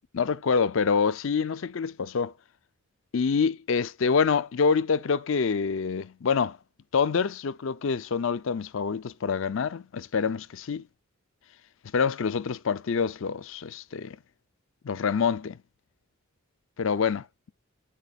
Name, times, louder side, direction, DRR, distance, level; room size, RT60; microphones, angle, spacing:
voice 1, 0.1-2.3 3.1-6.6 6.9-10.9 11.9-14.2 14.8-15.6 16.8-17.2, left 5 dB, 60° left, 0.5 m, -26 dB
7.8 x 6.6 x 2.3 m
head